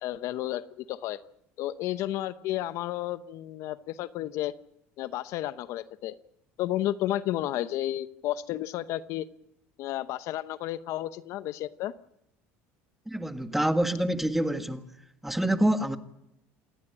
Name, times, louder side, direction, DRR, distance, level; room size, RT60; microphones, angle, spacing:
voice 1, 0.0-1.2 1.6-4.5 5.0-6.1 6.6-9.3 9.8-11.9, left 14 dB, 65° left, 0.9 m, -32 dB
voice 2, 13.1-14.8 15.2-16.0, right 1 dB, 5° right, 1.7 m, -26 dB
28.5 x 10.5 x 9.8 m
cardioid pair, 115°, 6 cm